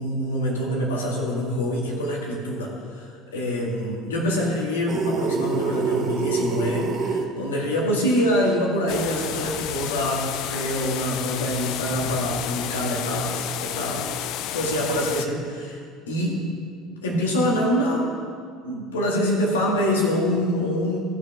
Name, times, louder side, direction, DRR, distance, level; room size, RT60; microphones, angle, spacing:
voice 1, 0.0-15.8 16.1-16.4 16.9-18.1 18.6-21.0, equal, 80° left, -2 dB, 2.0 m, -25 dB
sound 1, 4.9-7.3, right 4 dB, 40° right, 1.1 m, -26 dB
sound 2, 8.9-15.3, left 11 dB, 60° left, 0.4 m, -31 dB
17.5 x 6.3 x 3.7 m, 2.2 s
hypercardioid pair, 65°, 0 cm